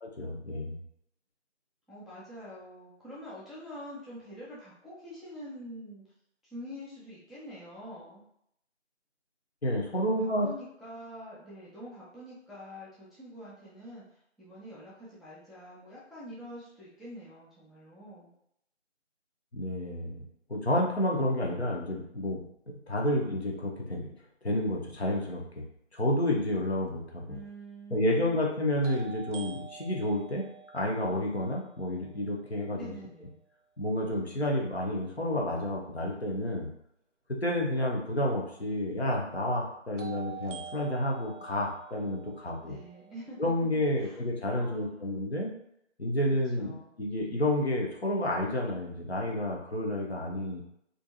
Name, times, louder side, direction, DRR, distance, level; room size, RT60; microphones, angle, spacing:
voice 1, 0.0-0.8 9.6-10.5 19.5-20.2 20.5-24.1 24.4-25.4 25.9-27.4 27.9-30.5 30.7-32.9 33.8-36.7 37.3-42.8 43.4-45.5 46.0-50.6, left 1 dB, 60° left, -1 dB, 0.7 m, -30 dB
voice 2, 1.9-6.0 6.4-8.2 9.8-18.3 27.3-28.7 32.7-33.4 42.6-43.5 44.0-44.2 44.5-45.2 46.3-47.0, equal, ahead, -9 dB, 0.5 m, -46 dB
sound 1, 26.9-27.0 28.8-32.7 40.0-44.0, right 7 dB, 80° right, 0.5 m, -47 dB
2.5 x 2.2 x 2.6 m, 0.74 s
figure-of-eight pair, 175°, 37 cm